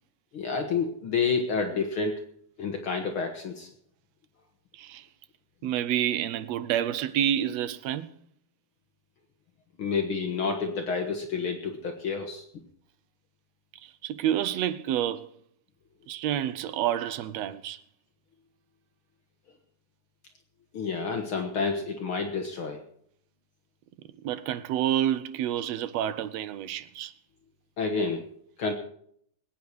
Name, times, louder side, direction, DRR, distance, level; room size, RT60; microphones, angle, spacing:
voice 1, 0.3-2.2 2.6-3.7 9.8-12.4 20.7-22.8 27.8-28.2 28.6-28.7, left 5 dB, 55° left, 1.8 m, -29 dB
voice 2, 4.7-5.1 5.6-8.1 13.8-15.3 16.1-17.8 24.2-27.1, right 11 dB, 75° right, 1.7 m, -29 dB
20.5 x 9.2 x 4.7 m
omnidirectional pair, 3.4 m